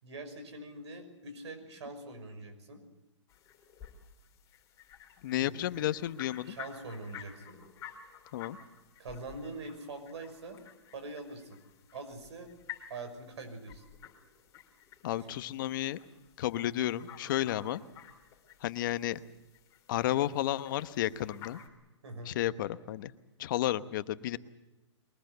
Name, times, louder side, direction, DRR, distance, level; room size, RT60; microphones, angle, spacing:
voice 1, 0.0-2.8 5.3-5.6 6.4-7.6 9.0-10.6 10.9-11.6 11.9-12.5 12.9-13.8 15.2-15.3 22.0-22.3, right 2 dB, 65° right, 7 dB, 6.1 m, -43 dB
sound 1, 3.3-21.7, left 9 dB, 20° left, 3.4 m, -52 dB
voice 2, 5.2-6.6 8.3-8.6 15.0-16.0 16.4-17.8 18.6-19.2 19.9-21.6 22.2-23.1 23.4-24.4, left 13 dB, 45° left, 13 dB, 1.1 m, -32 dB
23.0 x 20.5 x 8.0 m, 1.1 s
hypercardioid pair, 150°, 15 cm